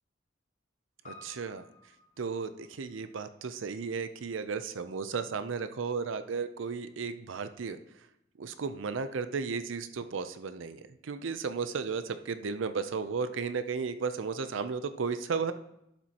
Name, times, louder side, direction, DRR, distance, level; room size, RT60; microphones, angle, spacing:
Piano, 1.0-5.6 5.8-5.9, left 2 dB, 40° left, 2.0 m, -57 dB
voice 1, 1.1-1.6 2.2-7.8 8.4-15.5, right 5 dB, 85° right, 11 dB, 0.5 m, -34 dB
11.0 x 7.5 x 2.9 m, 0.81 s
head